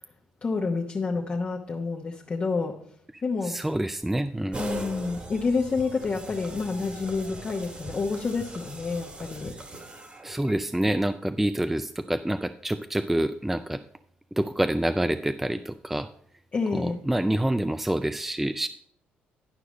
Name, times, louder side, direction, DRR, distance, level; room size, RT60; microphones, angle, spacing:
voice 1, 0.4-2.8 3.2-3.6 4.6-9.6 16.5-17.0, left 4 dB, 35° left, -1 dB, 1.0 m, -29 dB
voice 2, 3.4-4.6 10.2-13.8 14.4-16.1 16.7-18.7, right 1 dB, 5° right, 10 dB, 0.4 m, -27 dB
sound 1, 4.5-10.6, right 1 dB, 30° right, 1.8 m, -40 dB
11.5 x 4.9 x 5.0 m, 0.63 s
cardioid pair, 90°, 4 cm